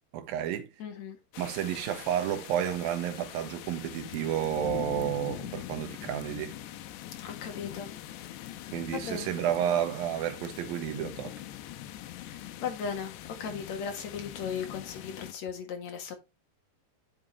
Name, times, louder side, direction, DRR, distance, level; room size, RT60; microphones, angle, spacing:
voice 1, 0.1-0.7 1.4-6.6 8.7-11.4, right 10 dB, 65° right, 2.7 m, -31 dB
voice 2, 0.8-1.2 7.2-7.9 8.4-8.6 8.9-9.3 12.3-13.1 13.4-16.1, left 6 dB, 55° left, 2.1 m, -37 dB
sound 1, 1.3-15.3, left 13 dB, 80° left, 2.9 m, -42 dB
9.3 x 7.4 x 3.1 m
omnidirectional pair, 5.0 m